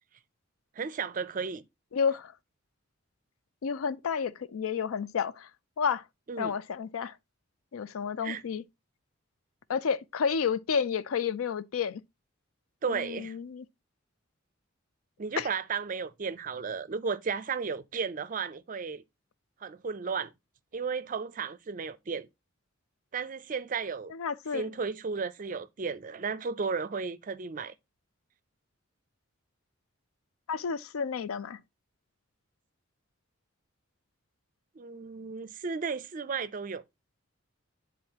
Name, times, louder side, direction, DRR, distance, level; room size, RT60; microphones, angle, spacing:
voice 1, 0.8-1.6 6.3-6.5 8.2-8.4 12.8-13.4 15.2-19.0 19.6-20.3 20.7-22.3 23.1-24.1 24.5-27.7 34.8-36.8, right 5 dB, 40° right, 0.4 m, -34 dB
voice 2, 1.9-2.3 3.6-5.5 5.8-6.0 6.4-7.2 7.7-8.6 9.7-12.0 12.9-13.6 15.4-15.5 24.1-24.7 30.5-31.6, left 6 dB, 90° left, 0.4 m, -31 dB
9.7 x 3.7 x 2.8 m
head